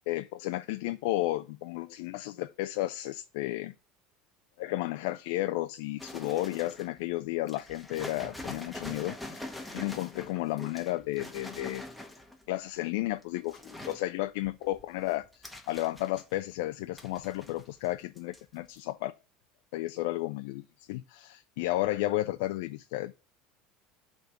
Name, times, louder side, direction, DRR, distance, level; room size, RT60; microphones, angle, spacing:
voice 1, 0.1-3.7 4.6-9.5 9.7-11.8 12.5-19.1 19.7-23.1, left 17 dB, 75° left, 0.4 m, -33 dB
sound 1, 6.0-7.0 7.5-12.5 13.1-14.0 14.4-16.5 17.0-17.9 18.2-18.4 18.7-18.8, left 1 dB, 5° left, 1.2 m, -44 dB
5.6 x 3.6 x 5.1 m
hypercardioid pair, 85°, 0 cm